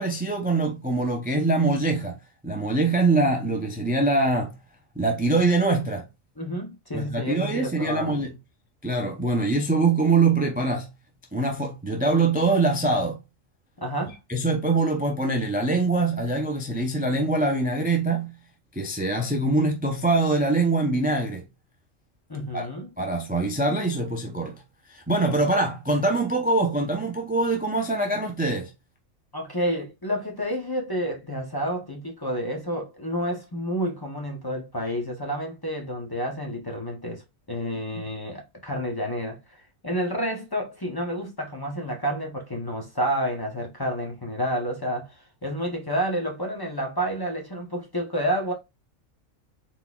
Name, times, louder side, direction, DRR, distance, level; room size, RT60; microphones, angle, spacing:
voice 1, 0.0-2.2 2.4-4.6 5.0-6.1 6.9-8.3 8.8-10.9 11.3-13.2 14.3-18.3 18.7-21.4 22.5-22.7 23.0-24.6 24.9-28.7, right 2 dB, 15° right, 0.3 m, -23 dB
voice 2, 6.4-8.2 13.8-14.2 22.3-22.9 29.3-48.5, equal, 20° left, 0.7 m, -30 dB
4.1 x 4.1 x 2.3 m
omnidirectional pair, 1.4 m